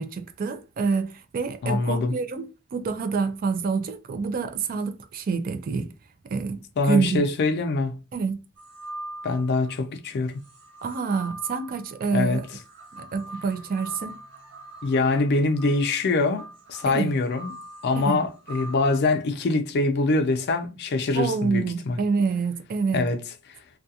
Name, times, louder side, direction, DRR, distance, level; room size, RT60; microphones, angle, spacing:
voice 1, 0.0-5.9 6.2-7.3 8.1-8.4 10.8-12.4 13.0-14.1 16.9-17.1 18.0-18.2 21.1-23.1, right 5 dB, 40° right, 0.3 m, -27 dB
voice 2, 1.6-2.1 6.8-7.9 9.2-10.4 12.1-12.4 14.8-17.5 17.8-22.0 22.9-23.2, left 3 dB, 50° left, 0.4 m, -24 dB
sound 1, 8.6-9.8 10.4-19.0, right 1 dB, 55° right, 0.9 m, -43 dB
2.4 x 2.3 x 2.7 m
head